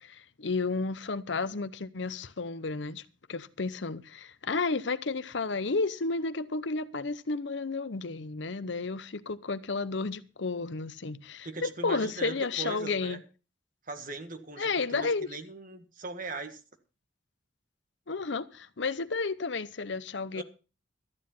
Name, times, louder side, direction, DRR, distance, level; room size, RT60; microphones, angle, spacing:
voice 1, 0.0-3.0 3.3-13.2 14.6-15.3 18.1-20.4, left 3 dB, 65° left, 0.8 m, -32 dB
voice 2, 11.4-13.2 13.8-16.6 20.3-20.4, right 3 dB, 45° right, 1.7 m, -40 dB
13.5 x 9.8 x 5.6 m
head